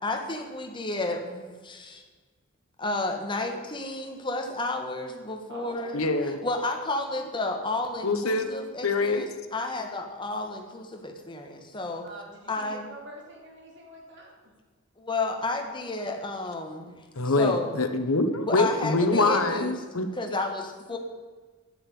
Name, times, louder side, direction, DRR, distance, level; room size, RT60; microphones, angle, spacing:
voice 1, 0.0-2.0 2.8-12.1 12.5-12.9 15.0-16.9 17.4-17.8 18.4-19.8 20.1-21.0, left 2 dB, 25° left, 3 dB, 1.6 m, -32 dB
voice 2, 5.9-6.4 8.0-8.5 8.8-9.2 17.2-20.1, left 2 dB, 85° left, 7 dB, 1.2 m, -24 dB
voice 3, 12.0-14.5, right 1 dB, 55° right, 0 dB, 2.9 m, -45 dB
9.6 x 9.3 x 8.6 m, 1.4 s
head